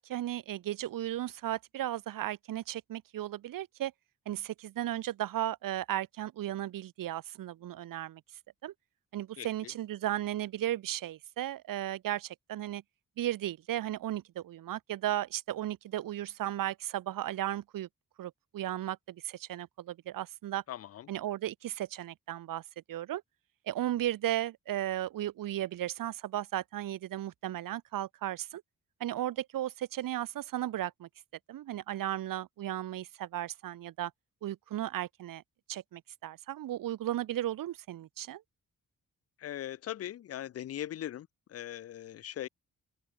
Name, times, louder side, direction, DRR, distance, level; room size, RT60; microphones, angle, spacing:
voice 1, 0.0-3.9 4.3-8.2 8.6-8.7 9.1-12.8 13.2-17.9 18.2-20.6 21.1-22.6 22.9-23.2 23.7-28.6 29.0-31.1 31.5-34.1 34.4-35.4 35.7-38.4, right 13 dB, 80° right, 0.8 m, -35 dB
voice 2, 9.4-9.7 20.7-21.1 39.4-42.5, left 11 dB, 50° left, 0.5 m, -40 dB
wide cardioid pair, 145°, 32 cm